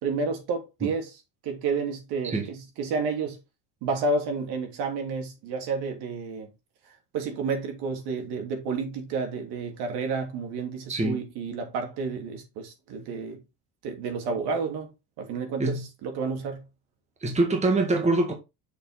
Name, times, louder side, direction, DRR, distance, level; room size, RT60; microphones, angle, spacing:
voice 1, 0.0-3.4 3.8-6.5 7.1-13.4 13.8-14.9 15.2-16.6, right 4 dB, 65° right, 2.8 m, -30 dB
voice 2, 10.9-11.2 15.6-15.8 17.2-18.3, right 2 dB, 15° right, 1.7 m, -24 dB
6.7 x 5.4 x 4.1 m
cardioid pair, 135°, 43 cm